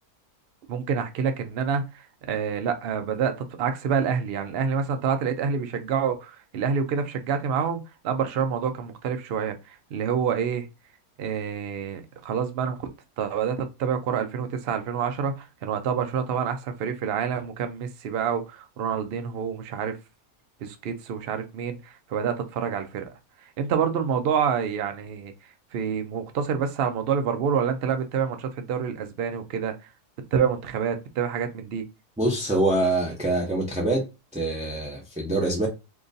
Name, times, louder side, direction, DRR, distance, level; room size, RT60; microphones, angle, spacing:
voice 1, 0.7-10.7 11.2-12.9 13.2-20.0 20.6-23.1 23.4-25.3 25.7-29.9 30.3-31.8, right 7 dB, 85° right, 0.5 m, -27 dB
voice 2, 32.2-34.1 34.3-35.7, right 2 dB, 10° right, 0.3 m, -25 dB
3.7 x 2.9 x 2.6 m
omnidirectional pair, 1.7 m